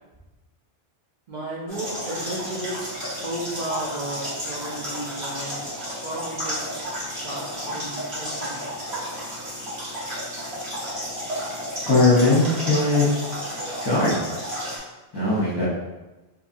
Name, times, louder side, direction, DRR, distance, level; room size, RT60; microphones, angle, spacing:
voice 1, 1.3-5.6 6.0-6.6 7.1-8.7, right 1 dB, 55° right, -5 dB, 0.7 m, -34 dB
sound 1, 1.7-14.8, equal, 80° right, 1.5 m, -32 dB
voice 2, 11.9-13.1 13.8-14.2 15.1-15.7, left 2 dB, 30° left, -8 dB, 0.7 m, -19 dB
2.7 x 2.7 x 2.5 m, 1.1 s
omnidirectional pair, 1.0 m